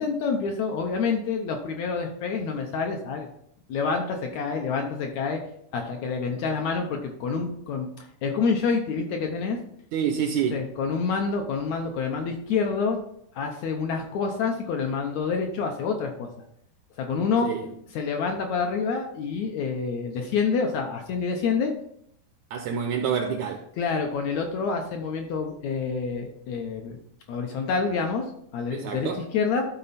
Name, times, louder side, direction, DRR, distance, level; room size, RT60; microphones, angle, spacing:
voice 1, 0.0-3.3 3.7-5.4 5.7-9.6 10.5-13.0 13.4-16.3 17.0-17.5 17.9-21.7 23.8-27.0 27.3-28.3 28.5-29.7, left 5 dB, 75° left, 1.8 m, -27 dB
voice 2, 9.9-10.6 17.4-17.7 22.5-23.7 28.7-29.2, right 7 dB, 80° right, 1.7 m, -27 dB
12.5 x 4.2 x 4.1 m
omnidirectional pair, 3.9 m